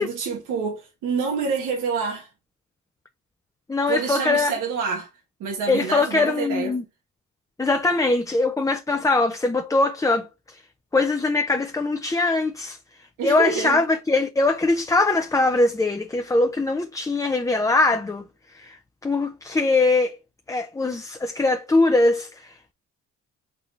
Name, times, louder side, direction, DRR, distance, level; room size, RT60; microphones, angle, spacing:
voice 1, 0.0-2.3 3.9-5.1 5.4-6.7 7.8-8.0 13.2-13.8, right 5 dB, 90° right, 1.4 m, -27 dB
voice 2, 3.7-4.5 5.7-6.8 7.6-10.6 10.9-12.8 13.2-20.2 20.5-22.6, left 3 dB, 10° left, 0.4 m, -22 dB
4.2 x 4.0 x 3.1 m
cardioid pair, 90°, 30 cm